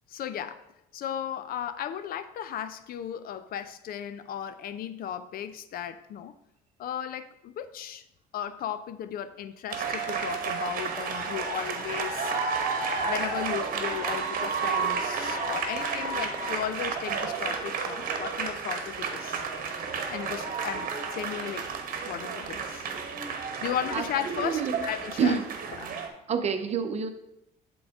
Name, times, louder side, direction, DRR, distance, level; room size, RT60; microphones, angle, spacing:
voice 1, 0.1-0.6 0.9-6.3 6.8-8.0 8.3-19.4 20.1-21.7 22.0-22.9 23.6-25.4 25.8-25.9, left 9 dB, 60° left, 12 dB, 0.5 m, -35 dB
sound 1, 9.7-26.1, right 5 dB, 55° right, 1.1 m, -31 dB
voice 2, 23.9-24.9 25.2-25.5 26.3-27.1, right 6 dB, 40° right, 8 dB, 0.8 m, -28 dB
11.0 x 3.9 x 3.6 m, 0.82 s
cardioid pair, 110°, 17 cm